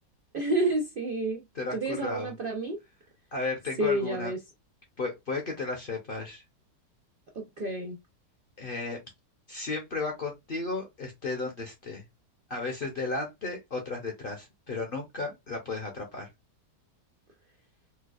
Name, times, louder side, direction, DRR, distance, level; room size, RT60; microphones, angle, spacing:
voice 1, 0.3-1.4 1.7-2.8 3.8-4.4 7.3-8.0, right 1 dB, 80° right, 0.4 m, -29 dB
voice 2, 1.5-2.3 3.3-4.3 5.0-6.4 8.6-9.0 9.5-12.1 12.5-16.3, left 3 dB, 45° left, 0.7 m, -34 dB
4.5 x 2.3 x 2.3 m
omnidirectional pair, 1.9 m